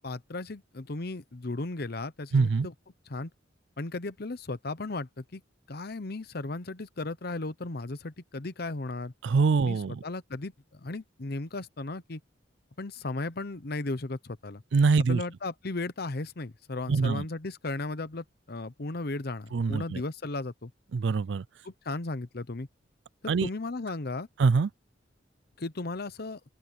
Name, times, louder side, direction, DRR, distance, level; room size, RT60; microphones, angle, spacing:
voice 1, 0.0-2.7 3.1-3.3 3.8-5.4 5.7-9.1 9.6-12.2 12.8-14.6 15.1-20.7 21.6-22.7 23.4-24.3 25.6-26.4, left 2 dB, 55° left, 0.9 m, -35 dB
voice 2, 2.3-2.7 9.2-10.0 14.7-15.2 16.9-17.3 19.5-20.0 20.9-21.4 23.3-23.5 24.4-24.7, right 4 dB, 75° right, 0.4 m, -24 dB
open air
head